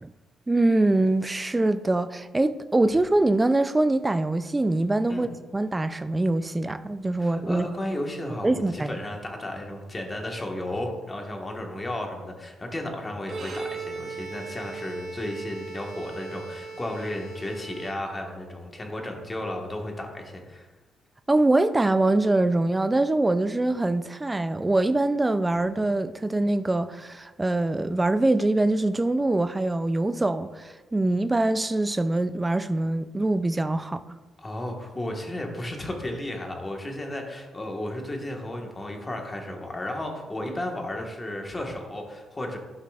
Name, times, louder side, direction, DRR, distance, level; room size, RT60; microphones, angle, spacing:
voice 1, 0.5-7.7 8.4-9.0 21.3-34.0, right 2 dB, 15° right, 0.3 m, -24 dB
voice 2, 7.2-20.7 34.4-42.6, left 1 dB, 20° left, 1.4 m, -34 dB
Bowed string instrument, 13.2-18.5, right 4 dB, 50° right, 2.3 m, -38 dB
12.0 x 5.7 x 2.4 m
cardioid pair, 90°, 0 cm